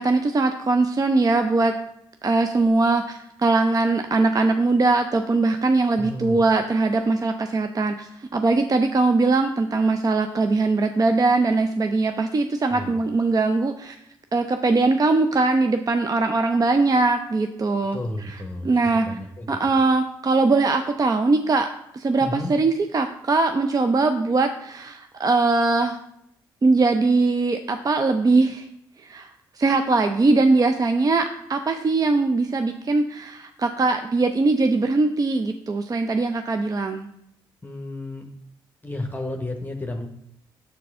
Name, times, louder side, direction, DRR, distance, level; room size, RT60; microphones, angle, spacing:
voice 1, 0.0-1.7 2.2-14.0 14.3-18.0 18.2-19.1 19.5-26.0 26.6-28.7 29.0-29.3 29.6-37.1, right 3 dB, 30° right, 7 dB, 0.5 m, -21 dB
voice 2, 5.9-6.4 12.7-12.9 17.9-18.7 19.0-19.6 22.2-22.5 37.6-38.3 38.8-40.1, left 2 dB, 15° left, 3 dB, 0.9 m, -32 dB
7.0 x 4.6 x 3.6 m, 0.75 s
hypercardioid pair, 40°, 12 cm